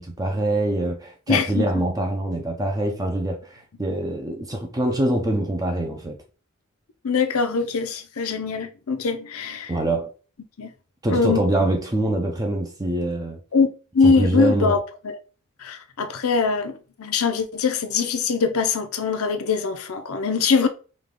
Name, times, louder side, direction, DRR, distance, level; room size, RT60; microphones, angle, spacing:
voice 1, 0.0-6.2 9.7-10.1 11.0-13.4 14.0-14.7, right 1 dB, 15° right, 0.5 m, -24 dB
voice 2, 1.3-1.8 7.0-9.8 10.6-10.7 11.1-11.4 13.5-13.7 13.9-15.2 15.6-20.7, left 5 dB, 75° left, 0.6 m, -22 dB
5.1 x 2.4 x 3.6 m
head